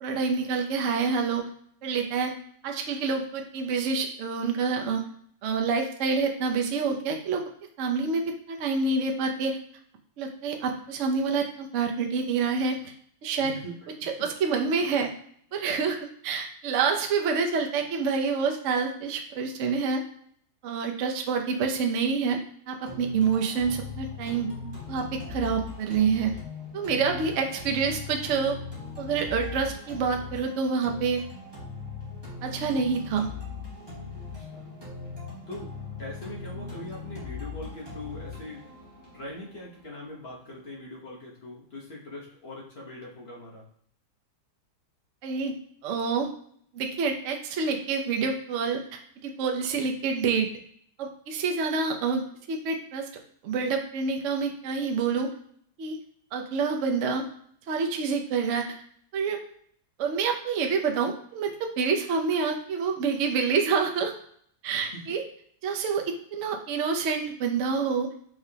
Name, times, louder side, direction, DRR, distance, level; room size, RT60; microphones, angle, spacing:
voice 1, 0.0-1.4 1.8-2.3 2.6-5.0 5.4-7.4 7.8-9.6 10.2-12.9 13.2-13.5 14.0-15.1 15.5-16.0 16.2-20.0 20.6-22.4 22.7-24.5 24.9-26.4 26.7-28.6 29.0-31.2 32.4-33.3 45.2-45.5 45.8-46.3 46.7-50.5 51.0-52.2 52.5-53.1 53.4-55.3 55.8-56.0 56.3-57.2 57.7-58.8 59.1-59.4 60.0-64.1 64.6-65.2 65.6-66.0 66.3-68.1, right 5 dB, 90° right, 3 dB, 0.6 m, -27 dB
voice 2, 13.3-14.3 34.4-34.8 35.5-35.7 36.0-38.6 39.1-43.7 64.7-65.0, left 1 dB, 45° left, -4 dB, 0.9 m, -42 dB
sound 1, 22.9-40.8, left 4 dB, 15° right, 1.1 m, -40 dB
4.7 x 3.4 x 2.8 m, 0.63 s
omnidirectional pair, 2.2 m